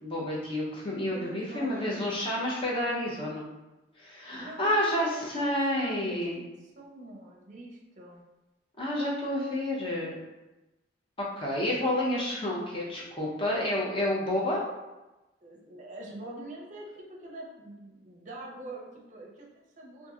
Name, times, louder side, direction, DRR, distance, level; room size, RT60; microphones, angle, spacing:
voice 1, 0.0-3.5 4.0-6.4 8.8-10.1 11.2-14.6, left 1 dB, 30° left, -5 dB, 0.7 m, -29 dB
voice 2, 1.1-2.2 4.4-6.4 6.8-8.2 15.4-20.1, right 1 dB, 45° right, -2 dB, 0.5 m, -45 dB
2.9 x 2.5 x 2.4 m, 1.1 s
head